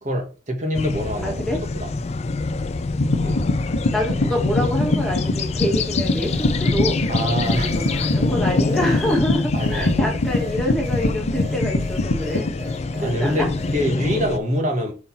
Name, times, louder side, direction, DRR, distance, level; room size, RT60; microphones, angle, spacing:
voice 1, 0.0-1.3 1.7-1.9 3.2-3.4 7.1-7.7 9.5-10.2 13.0-14.9, equal, 40° right, 1.7 m, -25 dB
sound 1, 0.7-14.4, left 3 dB, 35° left, 0.4 m, -25 dB
voice 2, 1.2-1.6 3.6-12.5 13.0-13.5, left 1 dB, ahead, 1.8 m, -26 dB
sound 2, 3.0-12.5, left 2 dB, 80° left, 1.0 m, -24 dB
sound 3, 4.7-13.8, left 3 dB, 65° right, 2.9 m, -41 dB
5.3 x 4.4 x 5.6 m
head